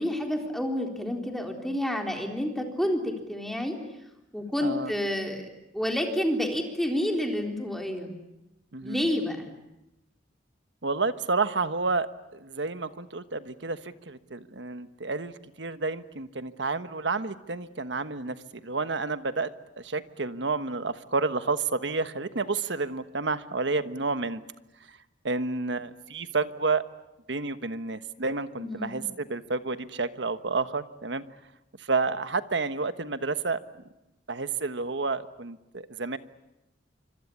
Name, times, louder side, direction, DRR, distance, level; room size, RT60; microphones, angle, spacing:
voice 1, 0.0-3.8 4.3-5.5 5.7-8.2 8.8-9.5 28.6-29.0, left 1 dB, ahead, 2 dB, 3.9 m, -29 dB
voice 2, 4.6-4.9 8.7-9.1 10.8-19.5 19.8-24.4 24.9-25.0 25.2-26.8 27.3-31.2 31.8-33.6 34.3-36.2, right 3 dB, 70° right, 11 dB, 1.3 m, -30 dB
27.0 x 25.0 x 8.7 m, 0.91 s
head